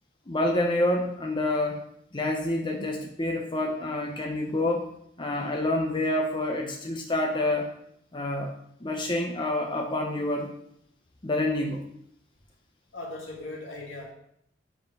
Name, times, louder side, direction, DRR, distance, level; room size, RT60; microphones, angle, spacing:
voice 1, 0.3-1.8 2.1-4.9 5.2-7.7 8.1-8.5 8.8-10.5 11.2-11.8, left 1 dB, 25° left, 1 dB, 0.8 m, -27 dB
voice 2, 12.9-14.1, left 2 dB, 75° left, -3 dB, 2.6 m, -38 dB
8.1 x 5.0 x 5.4 m, 0.72 s
head